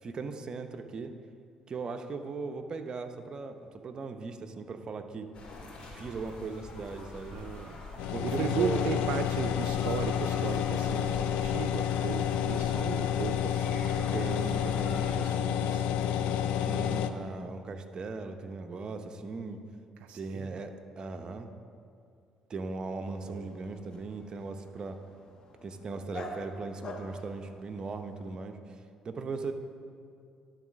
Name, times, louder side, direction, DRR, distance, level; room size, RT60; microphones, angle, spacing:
voice 1, 0.0-1.1 1.7-5.3 5.9-7.4 8.1-8.9 14.1-15.1 16.7-19.6 20.1-21.5 22.5-25.0 25.6-28.8 29.0-29.5, right 4 dB, 40° right, 6 dB, 0.7 m, -38 dB
sound 1, 5.3-15.2, left 2 dB, 60° left, 2.3 m, -45 dB
voice 2, 7.3-7.8 8.2-15.8 20.0-20.6 23.2-23.6, right 9 dB, 75° right, 7 dB, 0.3 m, -37 dB
sound 2, 8.0-17.1, left 9 dB, 85° left, 0.4 m, -29 dB
Dog, 23.0-28.4, left 2 dB, 40° left, 1.0 m, -47 dB
10.5 x 4.0 x 6.3 m, 2.3 s
supercardioid pair, 80°, 2 cm